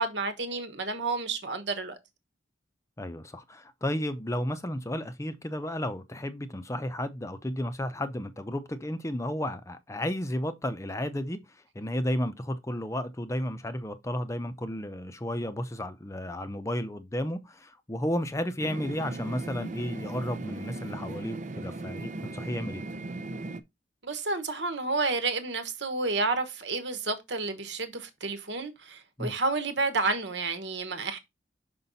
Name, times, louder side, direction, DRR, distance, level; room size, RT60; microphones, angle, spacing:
voice 1, 0.0-1.9 24.0-31.2, right 3 dB, 75° right, 1.3 m, -30 dB
voice 2, 3.0-22.8 29.2-29.3, left 1 dB, 15° left, 0.6 m, -33 dB
sound 1, 18.6-23.6, right 2 dB, 40° right, 0.5 m, -38 dB
5.6 x 5.3 x 4.0 m
head